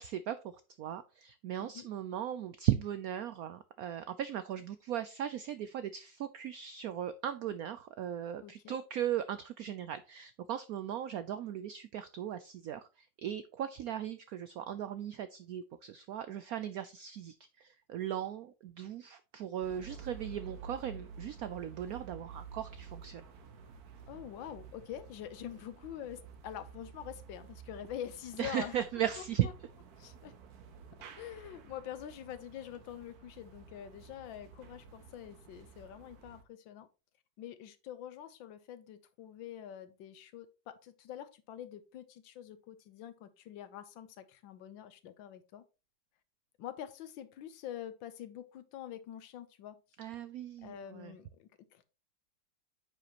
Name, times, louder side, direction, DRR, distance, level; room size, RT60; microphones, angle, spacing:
voice 1, 0.0-23.2 28.4-29.5 50.0-51.1, right 10 dB, 80° right, 12 dB, 0.8 m, -37 dB
voice 2, 8.4-8.8 24.1-28.7 29.4-29.5 30.0-30.3 31.2-36.9 37.4-45.6 46.6-49.8 50.6-51.8, left 10 dB, 90° left, 11 dB, 1.5 m, -46 dB
sound 1, 19.6-36.4, right 5 dB, 60° right, 1.3 m, -51 dB
9.2 x 5.5 x 2.9 m, 0.31 s
omnidirectional pair, 2.1 m